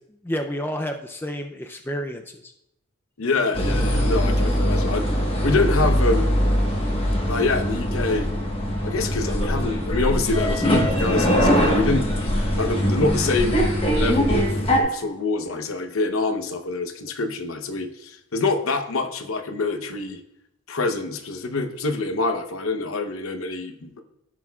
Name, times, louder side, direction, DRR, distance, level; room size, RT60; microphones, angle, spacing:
voice 1, 0.2-2.5, equal, 10° left, 4 dB, 0.4 m, -30 dB
voice 2, 3.2-5.0 5.4-6.5 7.2-8.3 8.8-12.1 12.6-14.5 14.7-20.2 20.7-24.0, left 3 dB, 75° left, 7 dB, 0.8 m, -26 dB
sound 1, 3.5-14.8, equal, 25° left, 1.2 m, -22 dB
15.0 x 6.0 x 2.3 m, 0.80 s
head